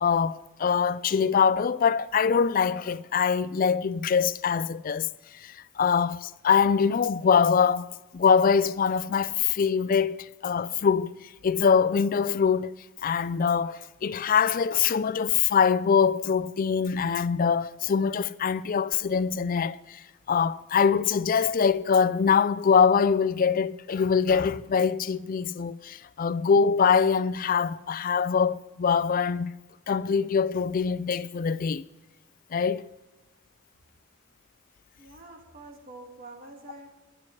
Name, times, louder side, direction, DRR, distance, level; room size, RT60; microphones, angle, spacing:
voice 1, 0.0-5.1 5.3-7.9 8.1-11.1 11.4-12.7 13.0-29.5 29.9-31.8 32.5-32.9, left 6 dB, 40° left, 0.4 m, -23 dB
voice 2, 35.0-36.9, right 2 dB, 45° right, 1.9 m, -46 dB
24.5 x 9.8 x 3.2 m
head